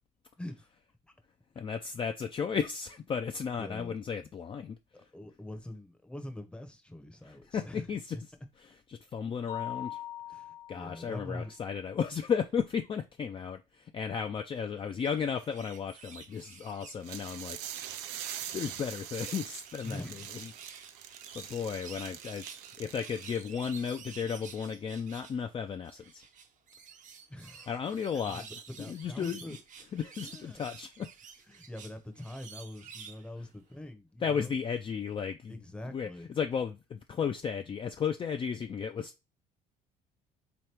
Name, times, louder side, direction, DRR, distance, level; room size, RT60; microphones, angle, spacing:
voice 1, 0.4-0.7 3.6-4.0 4.9-7.9 10.3-11.5 19.8-20.3 27.3-27.8 28.1-29.6 30.2-30.7 31.5-34.6 35.5-36.3, left 1 dB, 5° left, 0.7 m, -44 dB
voice 2, 1.6-4.8 7.2-8.2 8.9-10.0 10.7-17.9 18.5-20.0 20.4-20.5 21.3-22.4 22.8-26.2 27.7-28.4 28.9-29.4 29.9-31.1 34.2-35.6 35.9-36.1 36.4-39.1, left 7 dB, 30° left, 0.4 m, -34 dB
Mallet percussion, 9.5-11.3, left 13 dB, 70° left, 1.1 m, -41 dB
sound 1, 14.9-18.0 18.2-25.4 25.8-33.3 33.7-33.8, right 6 dB, 45° right, 0.7 m, -51 dB
sound 2, 17.0-23.5, right 11 dB, 85° right, 0.5 m, -43 dB
3.6 x 3.0 x 3.3 m
supercardioid pair, 90°, 18 cm